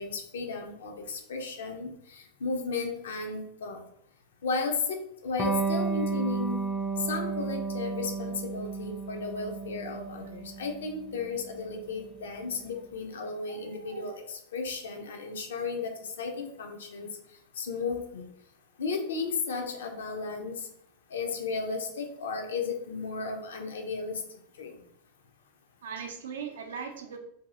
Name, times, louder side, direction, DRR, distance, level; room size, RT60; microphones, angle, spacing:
voice 1, 0.0-3.9 4.4-5.0 5.2-6.7 7.0-17.1 17.6-18.3 18.8-20.7 21.1-24.2 24.6-24.8, left 4 dB, 65° left, 4 dB, 0.5 m, -34 dB
Electric guitar, 5.4-12.5, right 4 dB, 10° left, 0.4 m, -33 dB
voice 2, 13.5-14.2 16.1-16.2 25.8-27.2, right 6 dB, 65° right, 3 dB, 0.5 m, -40 dB
2.7 x 2.6 x 2.5 m, 0.71 s
figure-of-eight pair, 90°, 0 cm